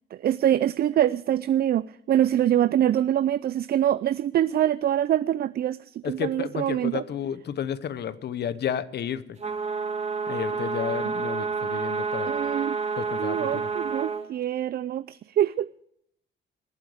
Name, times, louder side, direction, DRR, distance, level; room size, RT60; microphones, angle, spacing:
voice 1, 0.1-7.0 12.3-12.8 13.2-15.7, right 11 dB, 50° right, 16 dB, 0.4 m, -24 dB
voice 2, 6.0-9.4 10.3-12.3 13.0-13.7, left 9 dB, 55° left, 16 dB, 0.9 m, -32 dB
sound 1, 9.4-14.2, right 5 dB, 35° right, 2.5 m, -29 dB
21.0 x 8.0 x 5.0 m, 0.70 s
cardioid pair, 90°, 20 cm